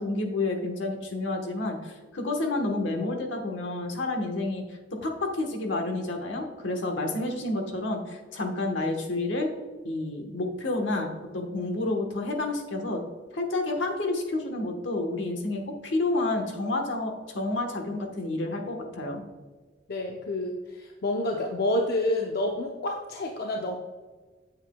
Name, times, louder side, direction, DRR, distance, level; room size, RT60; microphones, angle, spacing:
voice 1, 0.0-4.6 4.9-9.5 9.8-13.0 13.3-19.2, left 2 dB, 75° left, 3 dB, 1.2 m, -29 dB
voice 2, 19.9-23.8, left 1 dB, 55° left, 1 dB, 0.6 m, -28 dB
8.0 x 7.5 x 2.2 m, 1.4 s
head